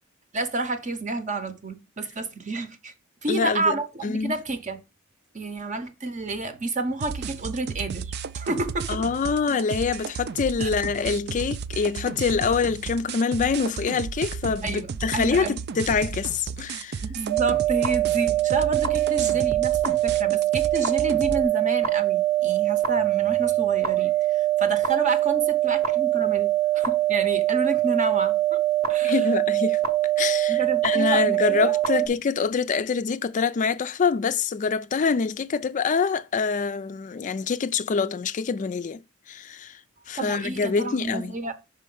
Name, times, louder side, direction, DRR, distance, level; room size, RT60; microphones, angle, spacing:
voice 1, 0.3-2.9 3.2-4.8 5.3-9.0 10.6-10.7 14.6-14.9 15.1-15.6 17.0-28.6 28.9-29.3 30.5-32.1 40.2-41.5, right 3 dB, 40° right, 0.8 m, -30 dB
voice 2, 3.3-4.3 8.9-17.0 29.0-29.8 30.2-39.0 39.3-39.8 40.1-41.4, left 5 dB, 40° left, 0.4 m, -25 dB
sound 1, 7.0-21.4, right 5 dB, 55° right, 0.4 m, -34 dB
sound 2, 17.3-32.1, right 15 dB, 90° right, 1.0 m, -23 dB
5.7 x 4.2 x 5.4 m
head